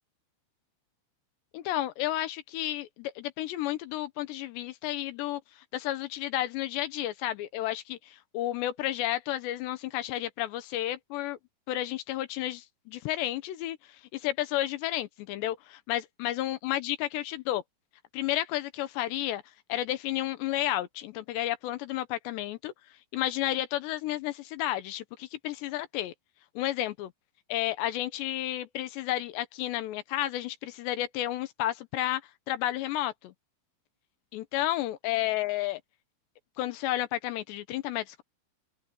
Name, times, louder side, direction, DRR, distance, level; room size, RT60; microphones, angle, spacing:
voice 1, 1.5-5.4 5.7-11.4 11.7-17.6 18.1-19.4 19.7-22.7 23.1-26.1 26.6-27.1 27.5-32.2 32.5-33.3 34.3-35.8 36.6-38.2, left 14 dB, 85° left, 3.2 m, -32 dB
open air
omnidirectional pair, 4.9 m